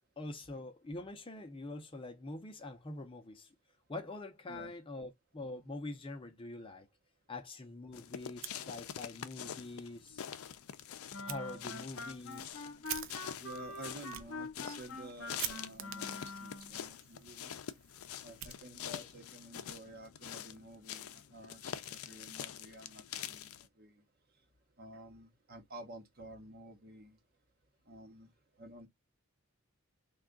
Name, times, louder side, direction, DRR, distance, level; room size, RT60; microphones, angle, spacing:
voice 1, 0.2-3.5 3.9-6.9 7.3-10.3 11.3-12.7, left 2 dB, 25° left, 0.5 m, -45 dB
sound 1, 7.9-23.7, left 9 dB, 85° left, 0.4 m, -46 dB
Fire, 8.3-9.2 9.5-9.6 10.0-10.1 11.3-11.4 12.0-19.1, right 10 dB, 65° right, 0.5 m, -47 dB
Wind instrument woodwind instrument, 11.1-16.8, left 2 dB, 65° left, 0.9 m, -45 dB
voice 2, 13.4-17.6 18.2-24.0 24.8-27.2 27.9-28.3 28.6-28.9, right 1 dB, 45° right, 0.9 m, -51 dB
3.5 x 2.3 x 3.6 m
head